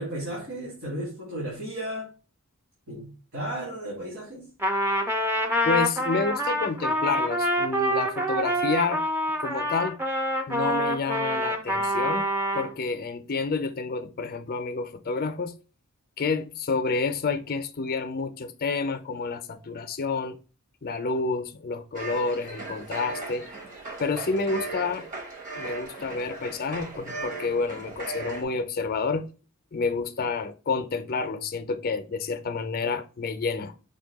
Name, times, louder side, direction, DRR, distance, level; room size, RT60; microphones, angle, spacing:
voice 1, 0.0-2.1 2.9-4.5, right 1 dB, 60° right, 2.3 m, -34 dB
Trumpet, 4.6-12.7, equal, 10° right, 0.5 m, -26 dB
voice 2, 5.6-9.0 9.4-10.0 10.5-15.5 16.2-20.4 20.8-23.5 24.0-25.1 25.6-29.3 29.7-33.7, left 4 dB, 40° left, 0.5 m, -29 dB
sound 1, 21.9-28.4, right 3 dB, 35° right, 0.9 m, -37 dB
5.2 x 2.3 x 3.4 m
head